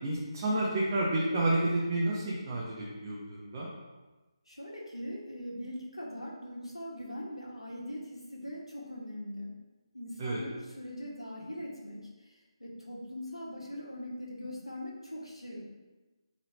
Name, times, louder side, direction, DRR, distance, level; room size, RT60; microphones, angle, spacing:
voice 1, 0.0-3.7 10.2-10.4, right 2 dB, 25° right, -6 dB, 0.9 m, -30 dB
voice 2, 4.5-9.6 9.9-15.6, left 1 dB, 85° left, -3 dB, 1.9 m, -41 dB
7.7 x 4.2 x 2.9 m, 1.2 s
figure-of-eight pair, 150°, 3 cm